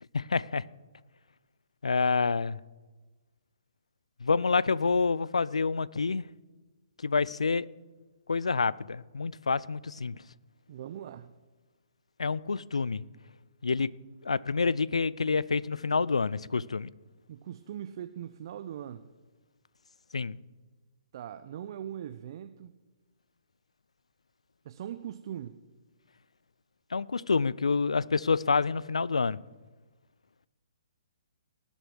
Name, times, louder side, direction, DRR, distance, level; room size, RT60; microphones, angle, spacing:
voice 1, 0.1-0.6 1.8-2.6 4.2-6.2 7.0-7.7 8.3-10.2 12.2-13.0 13.6-13.9 14.2-16.9 20.1-20.4 26.9-29.4, left 4 dB, 80° left, 0.4 m, -27 dB
voice 2, 10.7-11.3 17.3-19.1 21.1-22.7 24.6-25.6, right 10 dB, 50° right, 0.6 m, -40 dB
18.0 x 8.0 x 6.3 m
figure-of-eight pair, 135°, 3 cm